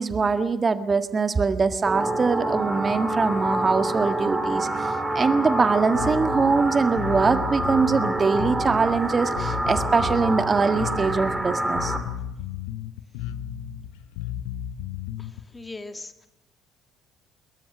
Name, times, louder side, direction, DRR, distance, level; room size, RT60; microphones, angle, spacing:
voice 1, 0.0-11.9, right 4 dB, 30° right, 9 dB, 1.8 m, -23 dB
sound 1, 1.9-12.0, right 2 dB, 15° right, 5.0 m, -27 dB
Bass guitar, 5.9-15.4, left 10 dB, 70° left, 1.3 m, -34 dB
voice 2, 15.2-16.3, left 2 dB, 20° left, 8 dB, 2.4 m, -40 dB
25.5 x 22.0 x 6.1 m, 0.92 s
figure-of-eight pair, 50°, 0 cm